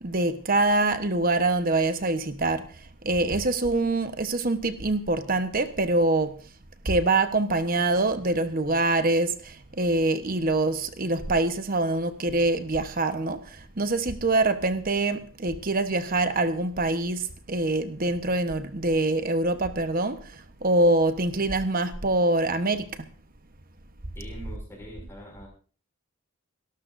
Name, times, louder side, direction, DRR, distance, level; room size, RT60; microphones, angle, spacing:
voice 1, 0.0-2.7 3.0-6.4 6.8-22.9, right 2 dB, 45° right, 1.1 m, -25 dB
voice 2, 24.1-25.5, equal, 10° left, 6.3 m, -43 dB
30.0 x 12.5 x 2.6 m
head